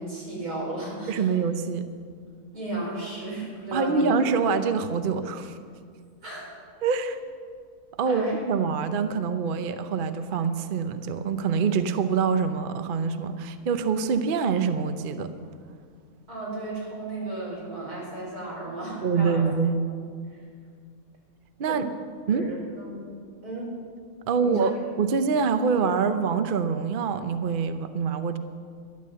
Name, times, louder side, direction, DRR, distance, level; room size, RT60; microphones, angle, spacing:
voice 1, 0.0-1.3 2.5-4.1 6.2-6.5 8.1-8.3 16.3-19.4 21.7-21.8 22.3-23.0 23.4-23.7 24.4-24.7, right 2 dB, 85° right, -5 dB, 5.6 m, -34 dB
voice 2, 1.1-1.8 3.7-5.5 6.8-7.2 8.0-15.3 19.0-19.8 21.6-21.9 22.3-22.5 24.3-28.4, right 5 dB, 50° right, 9 dB, 0.7 m, -25 dB
12.5 x 11.0 x 7.6 m, 2.1 s
omnidirectional pair, 1.6 m